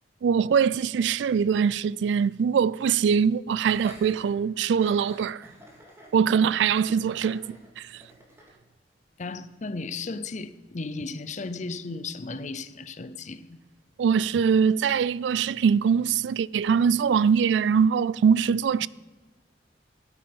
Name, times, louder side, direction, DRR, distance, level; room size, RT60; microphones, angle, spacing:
voice 1, 0.2-5.5 6.1-7.9 14.0-18.9, right 6 dB, 80° right, 0.3 m, -23 dB
Laughter, 3.6-8.6, right 1 dB, 15° right, 2.1 m, -48 dB
voice 2, 9.2-13.6, left 3 dB, 40° left, 0.6 m, -35 dB
13.0 x 8.7 x 5.2 m
head